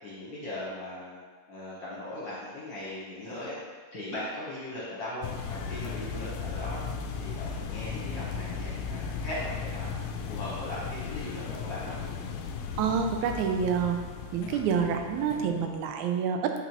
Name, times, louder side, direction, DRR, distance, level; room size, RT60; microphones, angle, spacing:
voice 1, 0.0-1.2 1.5-3.6 3.9-6.8 7.2-12.0, left 1 dB, 55° left, -7 dB, 1.4 m, -39 dB
sound 1, 5.2-15.8, left 5 dB, 80° left, 1.5 m, -36 dB
voice 2, 12.8-14.0 14.3-16.6, right 6 dB, 85° right, 5 dB, 2.0 m, -27 dB
8.2 x 4.1 x 3.0 m, 1.5 s
omnidirectional pair, 3.3 m